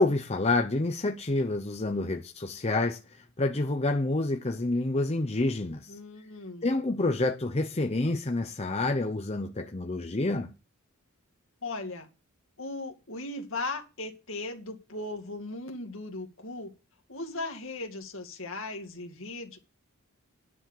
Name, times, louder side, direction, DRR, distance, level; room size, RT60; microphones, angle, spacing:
voice 1, 0.0-5.9 6.6-10.5, left 2 dB, 30° left, 0.8 m, -28 dB
voice 2, 5.9-6.7 11.6-12.1 12.6-16.7 17.1-19.6, left 2 dB, 65° left, 2.3 m, -37 dB
10.5 x 6.3 x 7.2 m
head